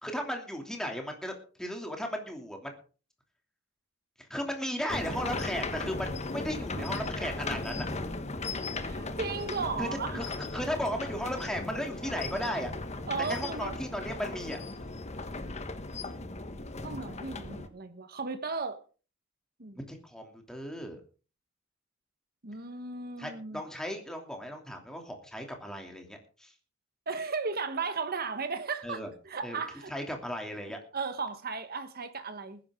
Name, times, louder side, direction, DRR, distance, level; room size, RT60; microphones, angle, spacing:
voice 1, 0.0-1.3 1.6-2.7 4.3-7.9 9.8-9.9 10.1-12.7 13.2-14.6 19.9-21.0 23.2-26.5 28.8-29.1 29.4-29.6 29.9-30.8, equal, 5° left, 2.9 m, -36 dB
sound 1, 4.9-17.7, left 2 dB, 35° left, 1.3 m, -37 dB
voice 2, 8.8-10.2 13.1-13.8 16.8-18.8 19.6-19.8 22.4-23.6 27.1-29.9 30.9-32.6, right 4 dB, 50° right, 1.4 m, -35 dB
20.0 x 10.5 x 3.8 m
head